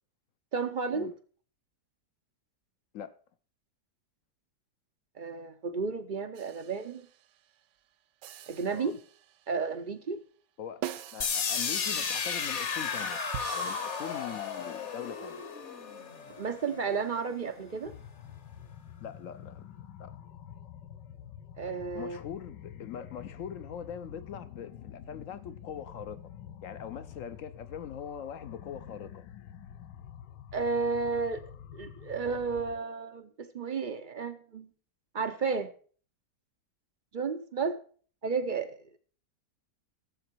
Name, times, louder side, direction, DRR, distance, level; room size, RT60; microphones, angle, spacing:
voice 1, 0.5-1.1 5.2-7.1 8.5-8.9 9.5-10.2 16.4-17.9 21.6-22.2 30.5-31.4 31.7-34.7 35.1-35.7 37.1-37.8 38.2-39.0, right 5 dB, 55° right, 0.5 m, -32 dB
sound 1, 6.4-7.3 8.2-9.6 10.8-12.4 13.3-15.1, right 11 dB, 80° right, 1.3 m, -44 dB
voice 2, 11.1-15.5 19.0-19.7 20.0-20.2 21.9-26.2 26.6-29.3, left 9 dB, 60° left, 0.9 m, -42 dB
sound 2, 11.2-17.1, left 6 dB, 45° left, 1.2 m, -33 dB
sound 3, 17.8-32.8, left 9 dB, 85° left, 1.4 m, -48 dB
16.0 x 7.5 x 4.5 m
omnidirectional pair, 1.8 m